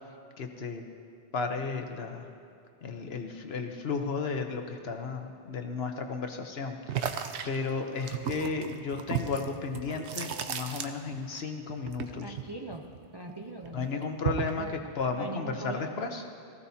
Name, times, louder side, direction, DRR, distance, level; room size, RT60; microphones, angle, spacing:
voice 1, 0.4-0.8 1.3-2.3 2.8-12.4 13.7-16.2, left 4 dB, 65° left, 5 dB, 1.2 m, -34 dB
sound 1, 6.9-11.4 11.7-13.3 13.6-14.6, right 8 dB, 80° right, 1.0 m, -35 dB
voice 2, 12.2-12.9 13.1-13.9 14.4-14.8 15.2-16.0, right 3 dB, 30° right, 2 dB, 0.5 m, -41 dB
19.0 x 15.0 x 2.8 m, 2.5 s
omnidirectional pair, 1.1 m